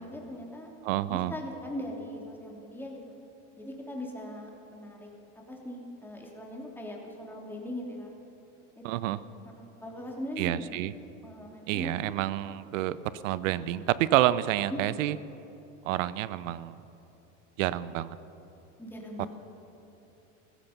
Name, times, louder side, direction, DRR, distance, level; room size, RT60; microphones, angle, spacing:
voice 1, 0.0-0.7 1.1-3.1 3.6-5.1 5.5-8.1 8.8-8.9 9.4-10.8 11.2-12.1 14.7-14.8 18.8-19.3, left 1 dB, 5° left, -1 dB, 2.9 m, -40 dB
voice 2, 0.8-1.3 8.8-9.2 10.4-10.9 11.7-15.2 15.8-16.7 17.6-18.2 19.2-19.3, right 14 dB, 85° right, 17 dB, 0.7 m, -28 dB
15.0 x 14.5 x 5.9 m, 3.0 s
supercardioid pair, 110°, 37 cm